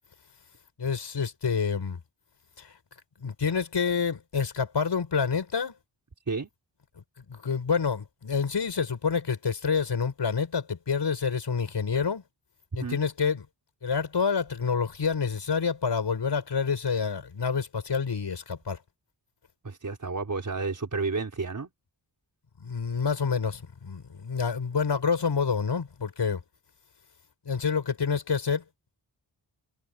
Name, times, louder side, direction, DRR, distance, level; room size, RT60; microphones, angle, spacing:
voice 1, 0.8-2.0 2.6-2.7 3.2-5.7 7.2-12.2 12.7-13.5 13.8-18.8 22.6-26.4 27.5-28.6, left 5 dB, 70° left, 5.8 m, -28 dB
voice 2, 19.6-21.7, right 4 dB, 45° right, 5.2 m, -31 dB
wide cardioid pair, 110°, 44 cm